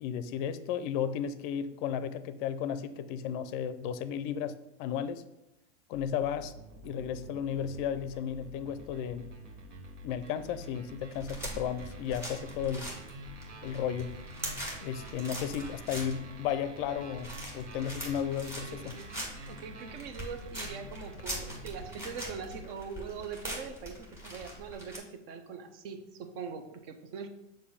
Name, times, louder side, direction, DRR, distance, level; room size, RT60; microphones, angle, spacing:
voice 1, 0.0-5.2 5.9-6.5 6.8-9.3 10.0-12.9 13.6-14.2 14.8-19.0, left 8 dB, 45° left, 12 dB, 0.4 m, -34 dB
sound 1, 5.9-22.7, equal, 80° right, 1.2 m, -47 dB
sound 2, 11.1-25.0, equal, 5° right, 1.8 m, -43 dB
voice 2, 18.7-27.3, right 6 dB, 55° right, 8 dB, 0.8 m, -42 dB
6.7 x 2.7 x 5.5 m, 0.89 s
supercardioid pair, 140°, 36 cm